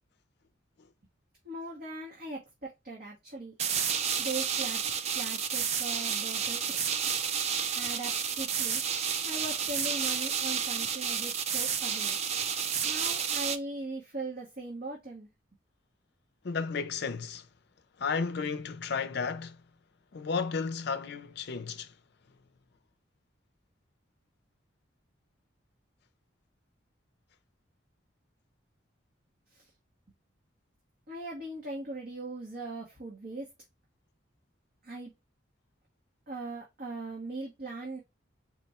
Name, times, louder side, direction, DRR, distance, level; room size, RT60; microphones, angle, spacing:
voice 1, 1.4-3.5 4.2-4.8 5.1-6.9 7.7-8.8 9.2-12.2 12.8-15.3 29.5-29.7 31.1-33.5 34.8-35.1 36.3-38.0, right 2 dB, 50° right, 1.1 m, -39 dB
sound 1, 3.6-13.6, right 7 dB, 35° right, 0.4 m, -31 dB
voice 2, 16.4-17.5 18.0-19.6 20.1-21.9, left 5 dB, 60° left, 0.5 m, -33 dB
4.3 x 2.2 x 4.1 m
head